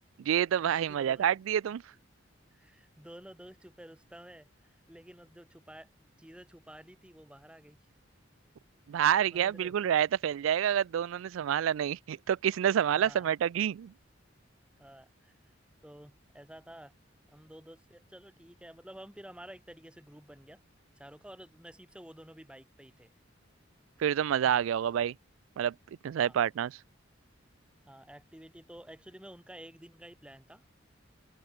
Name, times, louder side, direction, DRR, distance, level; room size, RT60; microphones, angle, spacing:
voice 1, 0.2-1.8 8.9-13.9 24.0-25.1 25.6-25.7 26.0-26.7, right 9 dB, 85° right, 0.3 m, -28 dB
voice 2, 0.9-1.2 2.5-7.8 9.3-9.8 13.0-13.3 14.8-15.3 15.8-16.9 17.3-20.6 21.0-23.1 26.2-26.4 27.9-30.6, right 1 dB, 5° right, 1.0 m, -51 dB
open air
head